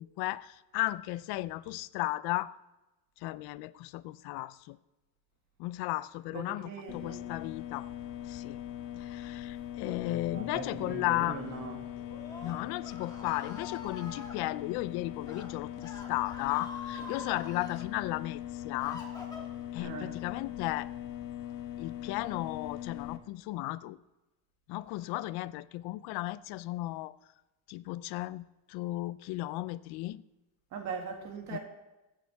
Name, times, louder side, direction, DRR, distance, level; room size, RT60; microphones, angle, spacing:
voice 1, 0.0-2.5 3.2-4.8 5.6-7.9 8.3-8.6 9.0-11.4 12.4-19.0 19.7-20.9 21.8-24.0 24.7-27.2 27.7-30.2 31.5-31.6, left 18 dB, 90° left, 0.6 m, -35 dB
voice 2, 6.3-7.3 9.9-11.8 12.4-12.6 19.8-20.2 30.7-31.6, right 5 dB, 50° right, 2.0 m, -41 dB
sound 1, 6.9-23.2, left 12 dB, 65° left, 1.2 m, -41 dB
Screaming, 12.0-14.3 15.1-15.5 15.8-17.8 18.4-19.8, left 4 dB, 10° left, 1.6 m, -45 dB
22.0 x 9.1 x 3.5 m
cardioid pair, 180°, 37 cm